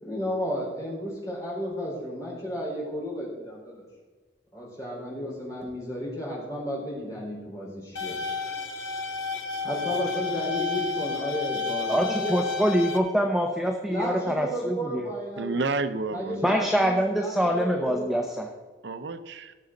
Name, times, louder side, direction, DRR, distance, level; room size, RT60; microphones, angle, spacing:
voice 1, 0.0-3.9 4.5-8.2 9.6-12.3 13.9-15.6 16.1-18.3, equal, 20° left, -5 dB, 4.3 m, -33 dB
sound 1, 8.0-13.0, left 4 dB, 90° left, 1.6 m, -31 dB
voice 2, 11.9-15.0 16.4-18.5, equal, ahead, 2 dB, 0.7 m, -25 dB
voice 3, 15.4-16.7 18.8-19.5, right 3 dB, 70° right, 10 dB, 0.6 m, -30 dB
17.5 x 7.2 x 3.9 m, 1.3 s
head